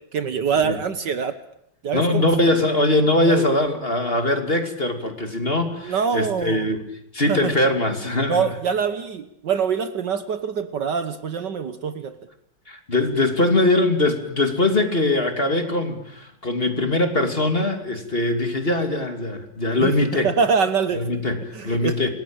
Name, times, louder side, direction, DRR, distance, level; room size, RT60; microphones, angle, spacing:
voice 1, 0.1-1.4 1.8-2.2 3.3-3.4 5.8-6.7 7.3-7.5 8.3-12.2 19.8-19.9 20.2-21.2 21.5-22.0, right 6 dB, 60° right, 11 dB, 1.7 m, -24 dB
voice 2, 1.9-6.8 7.1-8.5 12.7-20.3 21.0-22.1, left 2 dB, 25° left, 6 dB, 2.9 m, -21 dB
27.5 x 19.5 x 8.9 m, 0.75 s
omnidirectional pair, 2.3 m